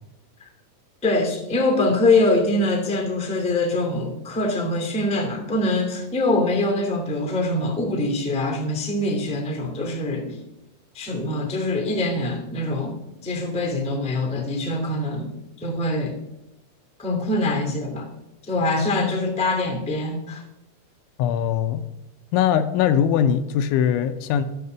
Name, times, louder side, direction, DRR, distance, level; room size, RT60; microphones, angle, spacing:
voice 1, 1.0-10.4 10.9-15.3 15.6-16.1 17.0-18.1 18.4-20.4, left 2 dB, 5° left, 3 dB, 0.5 m, -24 dB
voice 2, 21.2-21.8 22.3-24.4, left 9 dB, 80° left, 9 dB, 3.0 m, -21 dB
12.5 x 9.4 x 6.9 m, 0.90 s
omnidirectional pair, 5.7 m